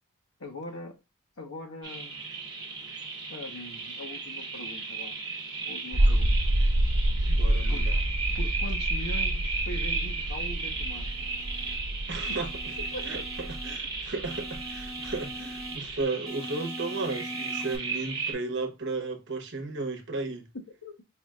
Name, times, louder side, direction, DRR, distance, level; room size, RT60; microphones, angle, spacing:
voice 1, 0.4-1.0 1.4-2.3 3.3-5.2 5.6-6.3 7.7-7.9 8.3-11.2 12.3-12.4 12.9-13.3 20.8-20.9, left 2 dB, 80° left, 1.1 m, -41 dB
sound 1, 1.8-18.3, right 4 dB, 20° right, 1.1 m, -35 dB
sound 2, 5.9-16.0, right 1 dB, 80° right, 0.8 m, -28 dB
voice 2, 7.3-7.9 12.1-12.5 13.0-13.2 13.5-20.5, right 3 dB, 55° right, 0.9 m, -34 dB
sound 3, 10.6-11.8 12.3-13.8 14.2-15.8 16.3-17.8, left 1 dB, 5° left, 0.6 m, -43 dB
4.9 x 3.2 x 2.4 m
head